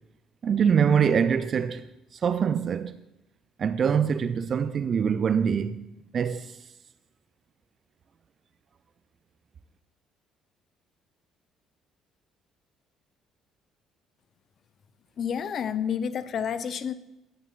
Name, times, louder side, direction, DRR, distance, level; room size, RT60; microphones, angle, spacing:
voice 1, 0.4-1.8 2.2-2.9 3.6-5.9 6.1-6.5, right 7 dB, 45° right, 0.4 m, -24 dB
voice 2, 15.2-16.9, left 8 dB, 50° left, 0.6 m, -29 dB
17.5 x 8.2 x 2.4 m
figure-of-eight pair, 50°, 0 cm